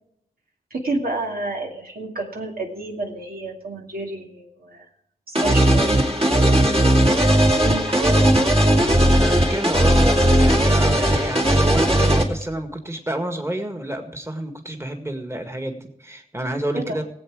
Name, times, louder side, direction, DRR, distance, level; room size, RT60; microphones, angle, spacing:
voice 1, 0.7-4.8 5.3-5.9 7.6-8.3 16.7-17.0, right 2 dB, 80° right, 0 dB, 2.4 m, -29 dB
sound 1, 5.3-12.2, right 1 dB, 40° right, 2.4 m, -17 dB
voice 2, 9.2-17.0, right 1 dB, 15° right, 4 dB, 1.8 m, -29 dB
19.0 x 8.3 x 4.8 m, 0.75 s
wide cardioid pair, 65°, 15 cm